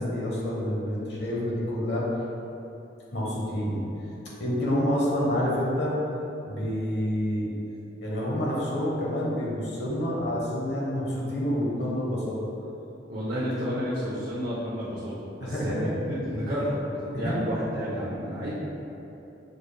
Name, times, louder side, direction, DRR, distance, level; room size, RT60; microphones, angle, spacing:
voice 1, 0.0-2.1 3.1-3.8 4.4-5.9 6.5-7.5 8.0-12.4 15.4-15.9 17.1-17.3, equal, 60° left, -5 dB, 1.0 m, -28 dB
voice 2, 13.1-15.1 15.4-18.5, equal, 60° right, -9 dB, 0.8 m, -30 dB
6.4 x 3.3 x 2.2 m, 3.0 s
head